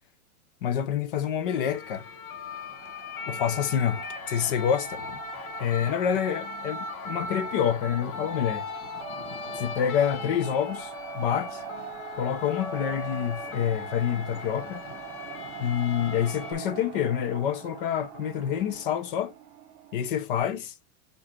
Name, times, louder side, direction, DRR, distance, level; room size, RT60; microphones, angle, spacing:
voice 1, 0.6-2.0 3.3-5.0 5.6-8.7 9.6-11.6 12.2-14.8 15.6-19.3 19.9-20.7, left 9 dB, 40° left, 0.8 m, -27 dB
sound 1, 1.4-16.5, left 4 dB, 80° left, 1.6 m, -39 dB
sound 2, 2.4-20.2, right 8 dB, 30° right, 1.3 m, -42 dB
5.1 x 5.0 x 4.3 m
supercardioid pair, 170°, 43 cm